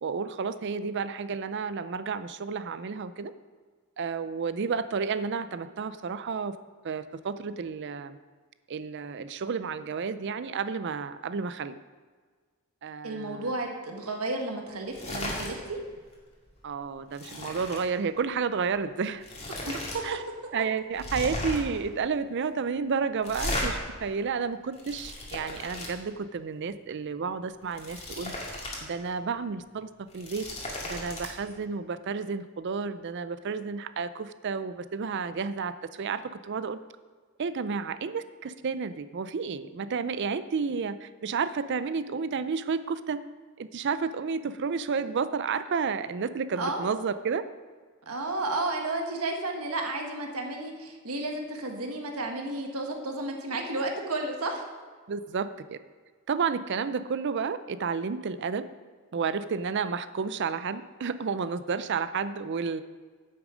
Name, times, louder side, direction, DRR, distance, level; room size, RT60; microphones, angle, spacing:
voice 1, 0.0-3.3 4.0-6.6 6.8-8.2 8.7-11.8 12.8-13.5 16.6-19.2 20.0-20.2 20.5-28.3 28.8-30.5 30.8-36.8 37.4-43.2 43.6-47.4 55.1-55.8 56.3-58.6 59.1-62.8, right 5 dB, 55° right, 13 dB, 0.4 m, -31 dB
voice 2, 13.0-15.8 19.7-20.0 46.6-46.9 48.1-54.6, right 2 dB, 85° right, 3 dB, 1.4 m, -32 dB
sound 1, 14.9-15.5 15.9-16.1 16.5-17.8 18.8-18.9 19.2-20.0 20.3-20.4 20.9-21.8 23.2-23.7 24.5-25.9 27.5-28.8 29.2-29.3 30.0-31.3, left 1 dB, 30° left, 2.1 m, -35 dB
8.9 x 8.2 x 5.0 m, 1.5 s
head